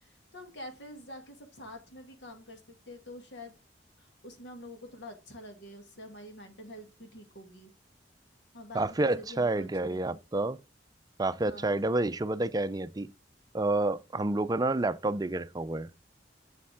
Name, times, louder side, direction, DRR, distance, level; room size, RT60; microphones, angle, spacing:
voice 1, 0.0-3.6 4.0-7.7 8.5-10.2 11.4-11.8 14.1-14.4, left 1 dB, 80° left, 2.2 m, -47 dB
voice 2, 8.7-10.6 11.2-13.1 13.5-15.9, right 2 dB, 20° right, 0.4 m, -29 dB
7.4 x 6.9 x 3.5 m
head